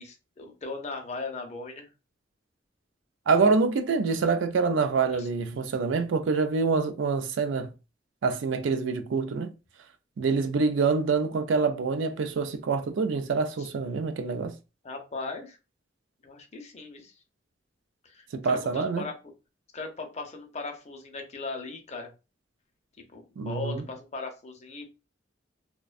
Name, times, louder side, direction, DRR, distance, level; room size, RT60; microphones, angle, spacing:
voice 1, 0.0-1.9 5.1-5.3 13.6-13.7 14.8-15.6 16.2-17.1 18.0-19.1 19.7-22.1 23.1-24.9, left 3 dB, 35° left, 0.6 m, -38 dB
voice 2, 3.3-7.7 8.2-9.5 10.2-14.5 18.3-19.1 23.4-23.8, right 4 dB, 85° right, 0.4 m, -26 dB
2.4 x 2.2 x 2.4 m
head